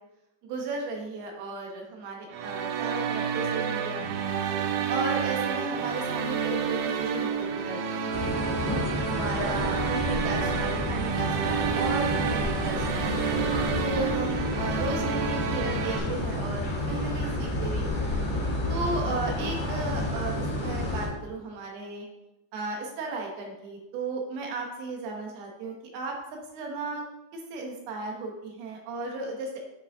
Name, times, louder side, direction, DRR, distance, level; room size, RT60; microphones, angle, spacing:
voice 1, 0.4-4.3 4.9-8.6 9.1-13.3 13.8-18.0 18.7-22.1 22.5-26.2 26.5-27.0 27.3-29.6, right 3 dB, 70° right, 1 dB, 2.7 m, -35 dB
sound 1, 2.3-16.0, right 7 dB, 85° right, 3.2 m, -29 dB
sound 2, 8.1-21.1, left 1 dB, 70° left, 1.2 m, -30 dB
9.1 x 5.1 x 3.6 m, 0.93 s
omnidirectional pair, 5.6 m